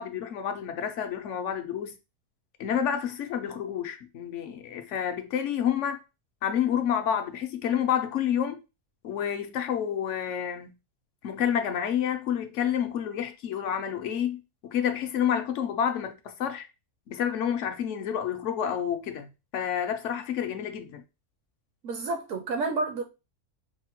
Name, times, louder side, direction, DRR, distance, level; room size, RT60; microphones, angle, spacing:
voice 1, 0.0-2.0 2.6-6.0 6.4-8.6 9.0-10.7 11.2-16.7 17.1-21.0, left 9 dB, 65° left, 0.8 m, -29 dB
voice 2, 21.8-23.0, right 3 dB, 70° right, 0.8 m, -30 dB
4.8 x 2.1 x 2.9 m
omnidirectional pair, 1.6 m